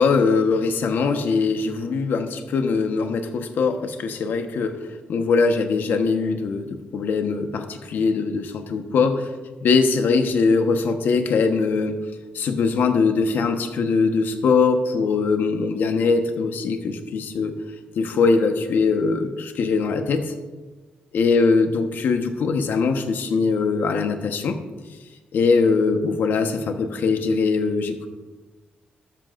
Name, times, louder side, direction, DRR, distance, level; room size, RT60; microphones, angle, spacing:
voice 1, 0.0-4.8 5.1-9.3 9.6-12.0 12.3-17.6 18.0-20.3 21.1-24.6 25.3-28.1, left 4 dB, 70° left, 6 dB, 1.2 m, -21 dB
13.5 x 13.5 x 2.6 m, 1.3 s
wide cardioid pair, 145°, 3 cm